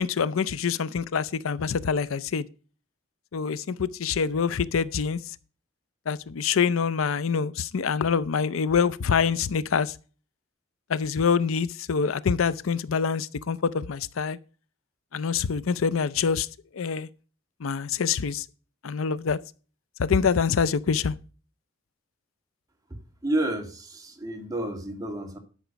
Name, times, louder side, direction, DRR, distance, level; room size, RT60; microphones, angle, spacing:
voice 1, 0.0-2.5 3.3-5.2 6.1-9.9 10.9-14.4 15.1-16.5 16.7-17.1 17.6-18.4 18.8-19.4 20.0-21.1, left 6 dB, 90° left, 0.5 m, -25 dB
voice 2, 23.2-25.4, right 1 dB, 20° right, 1.9 m, -30 dB
12.5 x 5.9 x 5.1 m
head